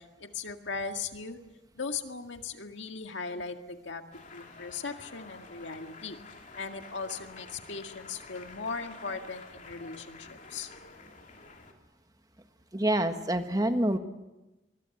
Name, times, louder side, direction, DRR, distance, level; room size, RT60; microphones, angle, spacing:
voice 1, 0.0-1.4 1.8-4.0 4.3-6.2 6.6-10.7, left 4 dB, 80° left, 5 dB, 2.0 m, -38 dB
sound 1, 4.1-11.7, left 3 dB, 45° left, 2.8 m, -50 dB
voice 2, 12.7-14.0, right 1 dB, 20° right, 8 dB, 1.4 m, -26 dB
25.5 x 22.0 x 7.9 m, 1.1 s
head